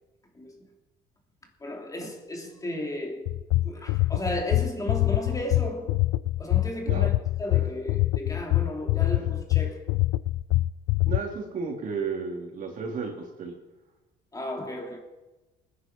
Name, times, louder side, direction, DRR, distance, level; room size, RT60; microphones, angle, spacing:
voice 1, 1.6-3.3 3.6-6.0 6.4-9.8 14.3-15.0, left 1 dB, 20° left, 2.9 m, -34 dB
sound 1, 3.3-11.2, left 18 dB, 90° left, 0.4 m, -24 dB
voice 2, 11.0-13.5, right 5 dB, 50° right, 3.5 m, -33 dB
20.0 x 10.5 x 4.7 m
cardioid pair, 110°, 17 cm